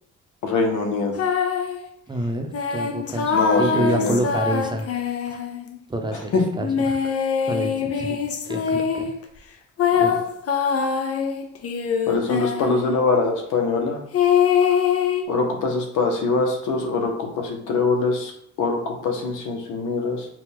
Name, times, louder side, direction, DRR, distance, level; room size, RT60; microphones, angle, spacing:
voice 1, 0.4-1.1 3.3-4.2 6.1-6.4 12.1-14.0 15.3-18.3 18.6-20.3, left 3 dB, 80° left, 2 dB, 1.1 m, -23 dB
sound 1, 1.2-1.8 2.5-5.8 6.6-9.2 9.8-12.9 14.1-15.2, left 7 dB, 50° left, 0.6 m, -23 dB
voice 2, 2.1-4.9 5.3-5.4 5.9-8.2 8.4-9.1 10.0-10.2, right 1 dB, 15° right, 3 dB, 0.8 m, -28 dB
4.9 x 2.4 x 3.5 m, 0.70 s
cardioid pair, 90°, 30 cm